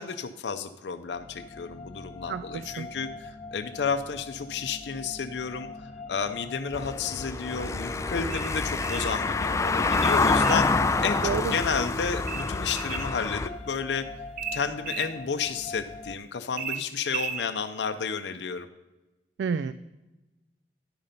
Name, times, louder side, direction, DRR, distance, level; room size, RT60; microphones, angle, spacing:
voice 1, 0.0-14.1 14.5-18.7, left 6 dB, 70° left, 8 dB, 0.5 m, -32 dB
sound 1, 1.1-16.2, left 3 dB, 40° left, 0.9 m, -43 dB
voice 2, 2.3-2.9 11.2-11.6 19.4-19.7, right 6 dB, 75° right, 14 dB, 0.3 m, -30 dB
Car passing by / Engine, 6.7-13.5, left 3 dB, 15° left, 0.3 m, -27 dB
sound 2, 8.3-9.1 9.9-10.7 12.3-13.1 14.4-15.1 16.6-17.5, right 7 dB, 50° right, 0.7 m, -35 dB
10.5 x 5.2 x 5.6 m, 1.1 s
head